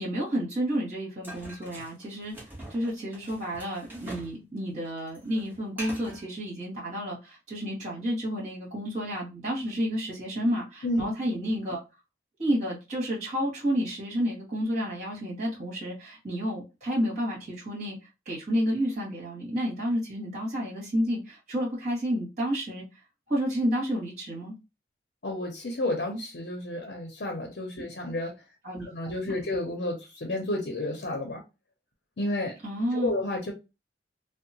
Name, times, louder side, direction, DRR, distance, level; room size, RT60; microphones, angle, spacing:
voice 1, 0.0-2.3 2.7-11.8 12.4-18.0 18.2-22.9 23.3-24.5 27.7-27.8 28.6-28.9 29.2-29.3 32.6-33.1, equal, 40° right, 1.5 m, -30 dB
sound 1, 1.2-4.4 4.6-6.2, right 1 dB, 10° right, 0.8 m, -43 dB
voice 2, 25.2-28.3 28.9-31.4 32.2-32.5 32.9-33.5, left 1 dB, 65° left, 0.6 m, -31 dB
2.8 x 2.0 x 2.7 m
head